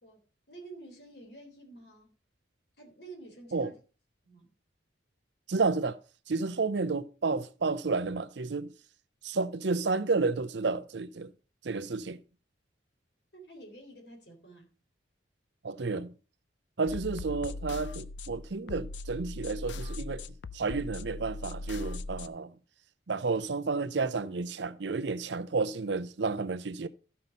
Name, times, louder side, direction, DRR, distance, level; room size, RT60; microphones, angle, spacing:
voice 1, 0.0-2.1 2.8-3.8 4.2-4.5 13.3-14.7, right 2 dB, 60° left, 3.8 m, -50 dB
voice 2, 5.5-6.0 6.3-8.7 9.2-11.3 11.6-12.2 15.6-16.1 16.8-20.2 20.5-22.5 23.1-26.9, right 4 dB, 70° right, 0.7 m, -31 dB
sound 1, 16.9-22.3, left 2 dB, 80° left, 0.6 m, -39 dB
14.0 x 5.7 x 5.3 m
head